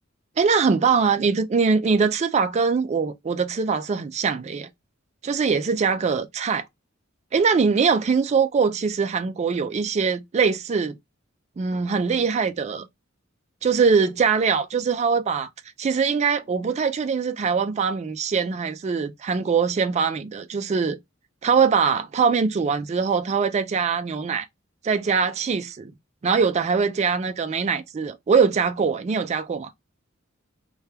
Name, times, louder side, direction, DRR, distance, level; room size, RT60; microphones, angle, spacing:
voice 1, 0.4-4.7 5.2-6.6 7.3-11.0 11.6-12.9 13.6-15.5 15.8-21.0 21.4-24.5 24.8-25.9 26.2-29.7, right 5 dB, 35° right, 0.3 m, -22 dB
2.8 x 2.2 x 3.3 m
head